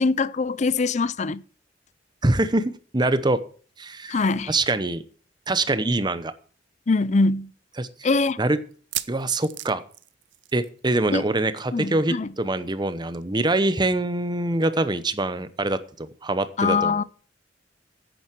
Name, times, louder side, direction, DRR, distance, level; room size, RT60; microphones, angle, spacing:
voice 1, 0.0-1.4 4.1-4.5 6.9-7.5 8.0-8.4 11.1-11.2 11.7-12.3 16.6-17.0, left 3 dB, 40° left, 0.5 m, -22 dB
voice 2, 2.2-3.4 3.8-5.0 5.5-6.3 7.8-8.1 8.4-8.6 9.1-9.8 10.5-17.0, right 2 dB, 25° right, 0.8 m, -24 dB
sound 1, 6.0-6.1 6.4-6.5 7.1-7.2 8.7-10.8 11.1-11.3 11.6-11.7 13.1-13.2, right 14 dB, 75° right, 0.7 m, -36 dB
10.5 x 9.2 x 4.6 m
head